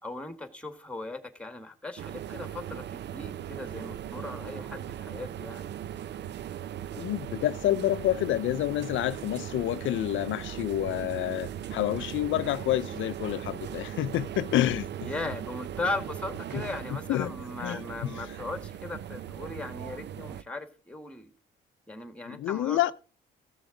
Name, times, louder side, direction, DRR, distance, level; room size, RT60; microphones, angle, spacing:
voice 1, 0.0-5.7 15.0-21.3 21.9-22.9, left 2 dB, 5° left, 1.8 m, -38 dB
sound 1, 2.0-20.4, right 10 dB, 60° right, 0.5 m, -39 dB
voice 2, 6.9-14.9 16.5-16.6 17.1-17.3 17.6-18.3 22.3-22.9, left 14 dB, 70° left, 0.4 m, -28 dB
15.0 x 6.9 x 3.9 m
cardioid pair, 80°, 21 cm